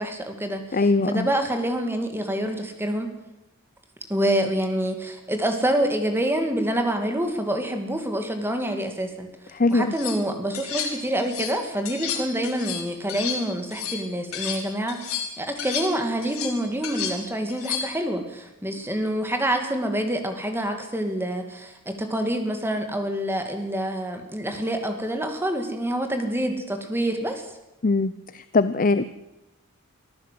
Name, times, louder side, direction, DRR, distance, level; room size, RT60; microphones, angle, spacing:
voice 1, 0.0-3.1 4.1-9.3 9.7-27.4, right 1 dB, 10° right, 5 dB, 2.5 m, -27 dB
voice 2, 0.7-1.3 9.5-9.9 27.8-29.0, left 3 dB, 40° left, 13 dB, 0.6 m, -21 dB
sound 1, 9.7-10.2 10.5-11.6 11.9-14.6 14.9-18.0, left 7 dB, 80° left, 4.8 m, -32 dB
24.0 x 14.5 x 7.8 m, 0.95 s
head